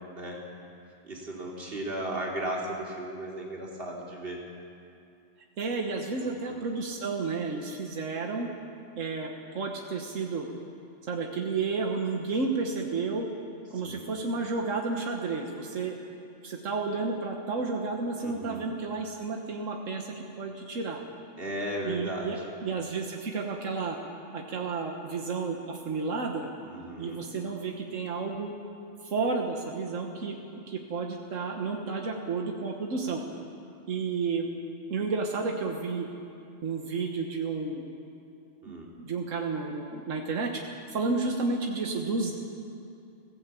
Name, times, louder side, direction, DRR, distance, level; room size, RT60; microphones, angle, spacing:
voice 1, 1.0-4.4 6.2-6.6 13.8-14.1 18.2-18.6 21.4-22.5 26.7-27.2 38.6-39.0, right 1 dB, 50° right, -2 dB, 3.6 m, -36 dB
voice 2, 5.6-8.5 9.0-10.5 11.1-13.3 13.7-16.0 16.4-21.0 21.8-24.0 24.3-26.5 27.0-28.5 29.0-33.2 33.9-34.5 34.9-36.1 36.6-37.8 38.7-42.3, right 4 dB, 90° right, 2 dB, 1.7 m, -31 dB
20.0 x 15.5 x 8.4 m, 2.5 s
omnidirectional pair, 1.3 m